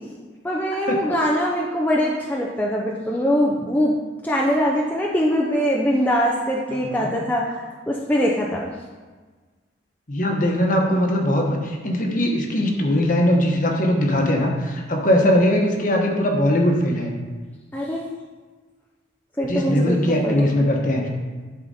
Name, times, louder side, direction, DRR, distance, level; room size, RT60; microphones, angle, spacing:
voice 1, 0.4-4.0 4.2-8.7 17.7-18.0 19.4-20.7, equal, 10° left, -3 dB, 0.5 m, -22 dB
voice 2, 6.8-7.1 10.1-17.1 19.4-21.1, left 1 dB, 45° left, 1 dB, 1.1 m, -20 dB
11.0 x 4.2 x 4.2 m, 1.4 s
head